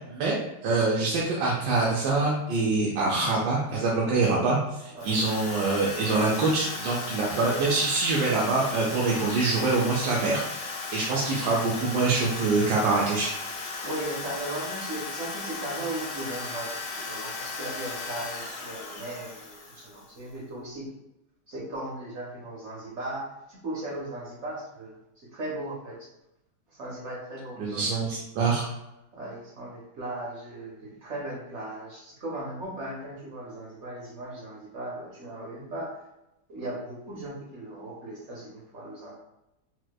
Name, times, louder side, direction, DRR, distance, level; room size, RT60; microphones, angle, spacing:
voice 1, 0.1-13.3 27.6-28.6, right 3 dB, 80° right, -4 dB, 1.2 m, -25 dB
Drill, 5.0-20.2, left 3 dB, 70° left, 0.4 m, -36 dB
voice 2, 13.8-20.9 21.5-26.1 26.7-27.9 29.1-36.0 36.5-39.1, right 1 dB, 60° right, -3 dB, 0.8 m, -37 dB
4.3 x 2.1 x 2.2 m, 0.91 s
omnidirectional pair, 1.9 m